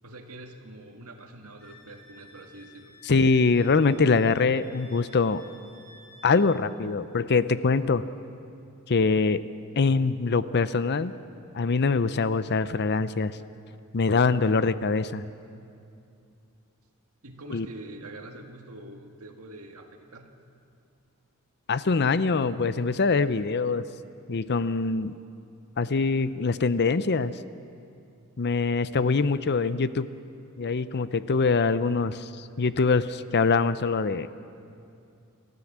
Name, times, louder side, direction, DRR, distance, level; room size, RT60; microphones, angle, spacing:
voice 1, 0.0-3.0 17.2-20.3, right 1 dB, 80° right, 4 dB, 1.9 m, -45 dB
Wind instrument woodwind instrument, 1.6-6.4, left 1 dB, 45° right, 4.8 m, -53 dB
voice 2, 3.0-5.4 6.2-8.1 8.9-9.4 9.8-11.1 11.5-13.4 13.9-15.2 17.5-17.7 21.7-23.9 24.3-25.2 25.8-27.4 28.4-30.1 30.6-34.3, left 4 dB, 50° left, 14 dB, 0.6 m, -24 dB
29.0 x 13.5 x 7.4 m, 2.6 s
head